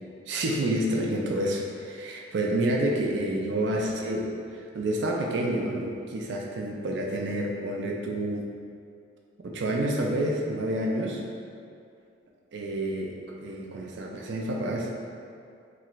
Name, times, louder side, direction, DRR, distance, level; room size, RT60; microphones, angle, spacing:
voice 1, 0.3-8.5 9.4-11.2 12.5-14.9, right 1 dB, 70° right, -1 dB, 0.4 m, -29 dB
3.1 x 2.5 x 2.9 m, 2.4 s
head